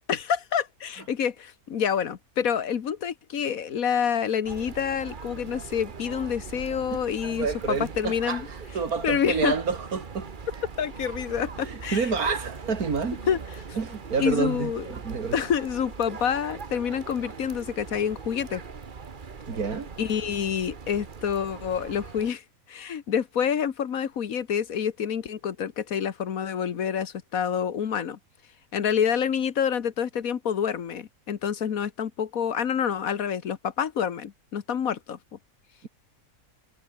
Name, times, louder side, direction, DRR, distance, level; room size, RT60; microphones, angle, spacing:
voice 1, 0.1-8.4 9.0-9.6 10.8-12.1 13.3-13.4 14.2-14.9 15.3-18.6 20.0-22.4 22.7-28.2 28.7-35.2, left 8 dB, 65° left, 1.7 m, -27 dB
sound 1, 4.4-22.3, right 5 dB, 35° right, 1.3 m, -41 dB
voice 2, 7.2-10.3 11.6-13.2 13.8-15.4 19.5-19.9 35.8-35.9, right 5 dB, 75° right, 2.7 m, -29 dB
omnidirectional pair, 1.6 m